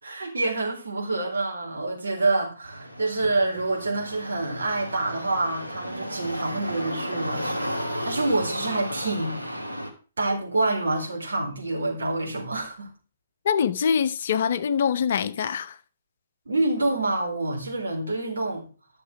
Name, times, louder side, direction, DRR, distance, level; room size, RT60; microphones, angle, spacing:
voice 1, 0.0-9.7 10.2-12.9 16.5-18.6, right 2 dB, 65° right, 4.0 m, -27 dB
sound 1, 2.6-9.9, equal, 90° right, 2.5 m, -34 dB
voice 2, 13.4-15.7, left 7 dB, 45° left, 0.8 m, -24 dB
11.5 x 6.8 x 4.8 m
figure-of-eight pair, 130°, 0 cm